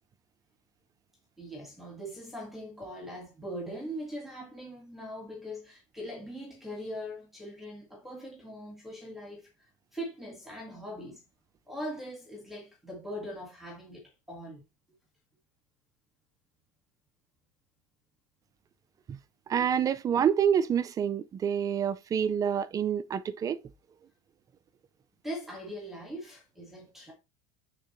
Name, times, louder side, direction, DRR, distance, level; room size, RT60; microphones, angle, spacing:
voice 1, 1.4-9.5 9.9-11.2 11.7-14.6 25.2-27.1, equal, ahead, 1.8 m, -41 dB
voice 2, 19.5-23.6, right 8 dB, 20° right, 0.3 m, -27 dB
8.8 x 3.9 x 3.0 m
supercardioid pair, 150°, 18 cm